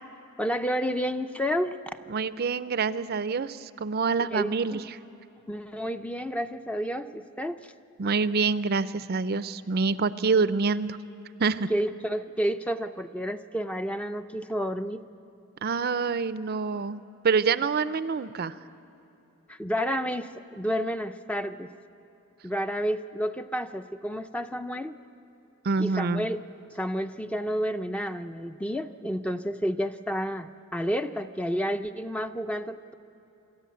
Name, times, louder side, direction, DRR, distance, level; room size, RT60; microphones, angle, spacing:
voice 1, 0.4-2.0 4.3-4.8 5.5-7.6 11.7-15.0 19.5-21.7 22.4-25.0 25.8-32.9, equal, 5° left, 8 dB, 0.4 m, -30 dB
voice 2, 2.1-4.8 8.0-11.0 11.4-11.7 15.6-18.6 25.6-26.3, right 4 dB, 45° right, 14 dB, 0.5 m, -26 dB
26.5 x 13.5 x 9.3 m, 3.0 s
head